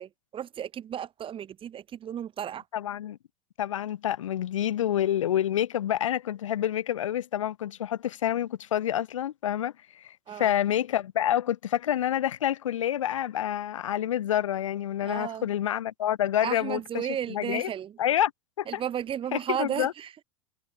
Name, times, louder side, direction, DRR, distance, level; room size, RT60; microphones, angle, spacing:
voice 1, 0.0-2.6 10.3-10.5 15.0-15.5 16.4-18.0 18.7-20.2, right 9 dB, 35° right, 3.5 m, -34 dB
voice 2, 2.7-3.2 3.6-17.7 18.0-18.3 18.6-18.8 19.3-19.9, left 11 dB, 80° left, 4.5 m, -28 dB
hypercardioid pair, 95°, 16 cm